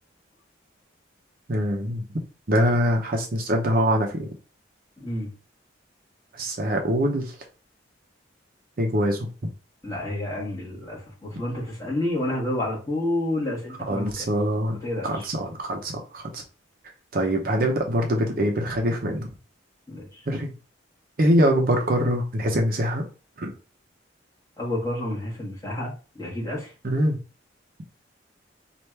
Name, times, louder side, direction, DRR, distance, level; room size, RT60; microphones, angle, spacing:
voice 1, 1.5-2.0 2.5-4.3 6.3-7.3 8.8-9.3 13.9-14.8 15.0-16.4 17.1-19.3 20.3-20.5 21.2-23.0 23.4-23.5 26.8-27.2, equal, 50° right, 2 dB, 0.6 m, -23 dB
voice 2, 5.0-5.3 9.8-14.3 14.8-15.3 19.9-20.2 24.6-26.7, left 1 dB, 20° left, -5 dB, 1.4 m, -29 dB
3.3 x 2.5 x 4.4 m, 0.34 s
head